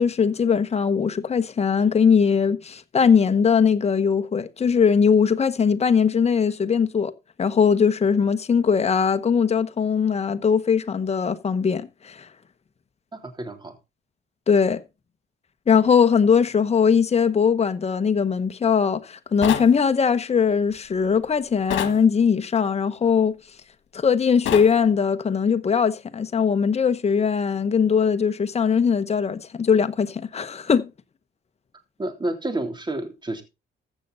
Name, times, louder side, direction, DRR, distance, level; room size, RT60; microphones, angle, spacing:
voice 1, 0.0-7.1 7.4-12.3 14.5-14.8 15.7-23.4 23.9-30.9, left 6 dB, 30° left, 1.1 m, -20 dB
voice 2, 13.1-13.7 32.0-33.4, right 1 dB, 20° right, 3.3 m, -30 dB
sound 1, 19.4-19.7 21.7-22.0 24.5-24.7, left 10 dB, 75° left, 1.8 m, -26 dB
15.0 x 6.8 x 4.0 m
cardioid pair, 90°, 20 cm